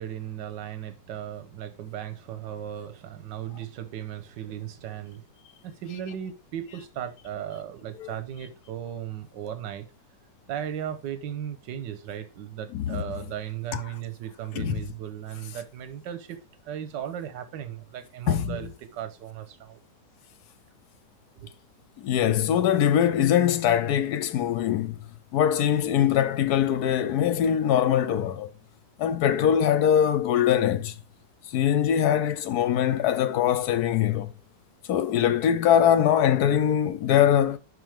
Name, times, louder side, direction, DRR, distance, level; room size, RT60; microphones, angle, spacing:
voice 1, 0.0-5.2 5.6-9.9 10.5-19.8 21.3-21.5, right 10 dB, 85° right, 1.4 m, -36 dB
voice 2, 18.3-18.7 22.0-25.1 25.3-28.5 29.0-30.9 31.5-34.3 34.9-37.6, left 9 dB, 70° left, 1.2 m, -22 dB
11.5 x 4.0 x 3.4 m
omnidirectional pair, 1.9 m